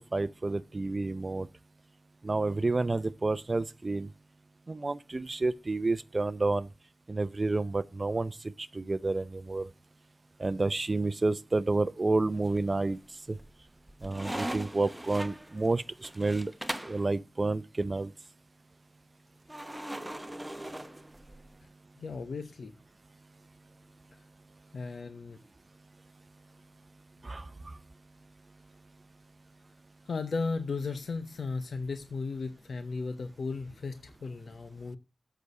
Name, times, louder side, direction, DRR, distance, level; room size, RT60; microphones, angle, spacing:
voice 1, 0.1-1.5 2.2-4.1 4.7-6.7 7.1-9.7 10.4-13.0 13.3-13.4 14.0-16.5 16.8-18.1 27.2-27.8, right 3 dB, 35° right, 0.6 m, -30 dB
sound 1, 12.4-13.0 13.4-17.0 19.5-21.5, right 1 dB, 10° right, 0.9 m, -40 dB
voice 2, 22.0-22.7 24.7-25.4 30.1-35.0, left 4 dB, 65° left, 0.9 m, -35 dB
8.3 x 6.2 x 8.0 m
wide cardioid pair, 75°, 0 cm